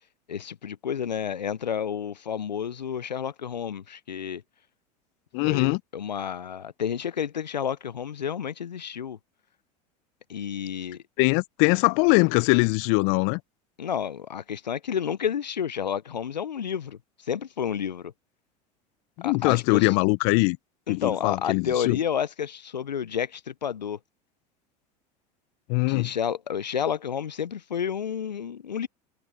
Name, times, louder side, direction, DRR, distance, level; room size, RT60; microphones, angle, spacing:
voice 1, 0.3-4.4 5.4-9.2 10.3-11.0 13.8-18.1 19.2-20.0 20.9-24.0 25.9-28.9, left 8 dB, 85° left, 0.8 m, -30 dB
voice 2, 5.3-5.8 11.2-13.4 19.2-20.6 20.9-22.0 25.7-26.1, left 33 dB, 55° left, 0.8 m, -22 dB
hypercardioid pair, 80°, 21 cm